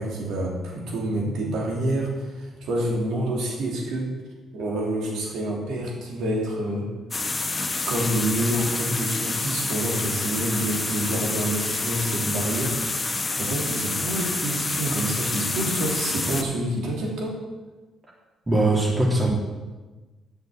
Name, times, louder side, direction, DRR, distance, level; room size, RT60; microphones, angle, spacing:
voice 1, 0.0-4.1 4.5-6.9 7.9-12.8 13.0-17.4, right 1 dB, 80° right, -2 dB, 2.8 m, -28 dB
sound 1, 7.1-16.4, left 3 dB, 20° left, 0.9 m, -28 dB
voice 2, 18.5-19.3, right 2 dB, 20° right, -2 dB, 2.8 m, -20 dB
9.4 x 6.5 x 7.2 m, 1.2 s
cardioid pair, 90°, 0 cm